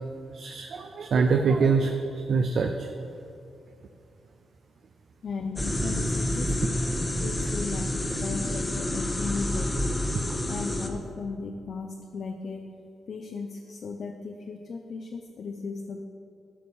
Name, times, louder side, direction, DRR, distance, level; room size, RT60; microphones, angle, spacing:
voice 1, 0.3-2.9, right 4 dB, 60° right, 5 dB, 0.5 m, -24 dB
voice 2, 5.2-6.5 7.2-9.9 10.5-16.1, left 4 dB, 55° left, 4 dB, 0.6 m, -36 dB
sound 1, 5.6-10.9, left 1 dB, 15° left, 0.9 m, -28 dB
12.5 x 4.8 x 7.0 m, 2.6 s
cardioid pair, 120°, 0 cm